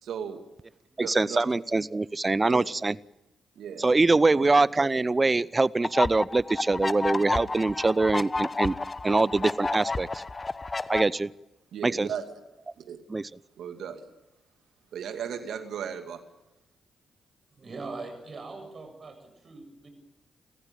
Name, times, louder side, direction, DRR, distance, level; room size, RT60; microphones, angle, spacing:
voice 1, 0.0-0.4 1.0-1.4 2.4-2.6 3.6-3.9 4.3-4.6 11.7-12.4 12.8-13.0 13.6-14.1 14.9-16.2, right 8 dB, 70° right, 7 dB, 2.4 m, -36 dB
voice 2, 1.0-3.0 3.8-8.7 9.0-10.1 10.9-11.3 11.8-12.1 13.1-13.2, right 3 dB, 30° right, 20 dB, 0.7 m, -23 dB
sound 1, 5.8-11.0, left 3 dB, 30° left, 1.0 m, -31 dB
voice 3, 17.5-19.9, right 3 dB, 50° right, 6 dB, 7.7 m, -41 dB
29.0 x 15.0 x 9.0 m, 0.96 s
hypercardioid pair, 40°, 0 cm